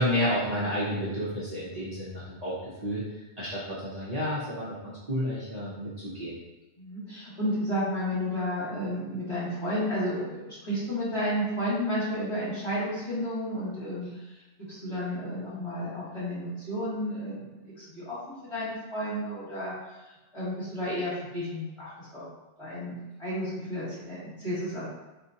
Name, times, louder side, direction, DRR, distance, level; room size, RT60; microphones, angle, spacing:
voice 1, 0.0-3.0 3.4-6.4, equal, 40° right, -10 dB, 0.7 m, -30 dB
voice 2, 6.8-14.1 14.7-18.2 18.5-19.7 20.3-22.3 22.6-24.9, equal, 25° left, -10 dB, 1.6 m, -32 dB
4.2 x 2.5 x 2.7 m, 1.1 s
omnidirectional pair, 1.2 m